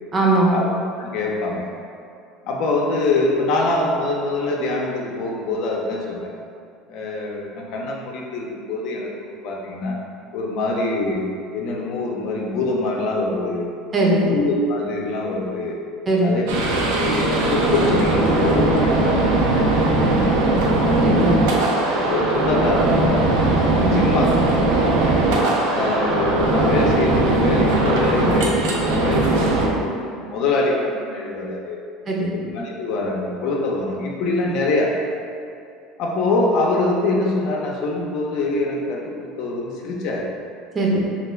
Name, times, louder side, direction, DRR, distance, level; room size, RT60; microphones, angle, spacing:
voice 1, 0.1-0.5 13.9-14.3 16.1-16.4 20.9-21.4 23.7-24.0 32.1-32.3 40.7-41.1, right 2 dB, 30° right, -3 dB, 0.6 m, -19 dB
voice 2, 1.0-1.7 2.4-6.3 6.9-10.0 10.3-11.2 11.5-13.6 14.0-15.8 16.2-16.6 16.9-20.8 21.8-23.5 23.9-25.3 25.7-31.8 32.3-34.9 36.0-40.3, left 2 dB, 65° left, -1 dB, 0.4 m, -24 dB
sound 1, 16.5-29.7, right 2 dB, 80° right, 0.4 m, -19 dB
2.4 x 2.2 x 3.1 m, 2.4 s
supercardioid pair, 95°, 0 cm